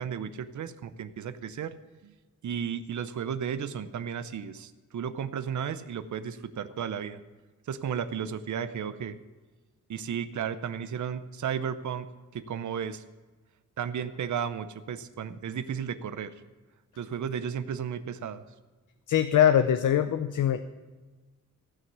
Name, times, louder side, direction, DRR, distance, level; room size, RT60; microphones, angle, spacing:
voice 1, 0.0-1.7 2.0-2.1 2.4-7.2 7.7-9.2 9.9-12.1 12.3-13.0 13.8-16.3 17.0-18.4, right 8 dB, 65° right, 12 dB, 0.8 m, -34 dB
voice 2, 19.1-20.6, left 10 dB, 70° left, 9 dB, 0.7 m, -22 dB
15.5 x 6.3 x 8.0 m, 1.3 s
wide cardioid pair, 120°, 31 cm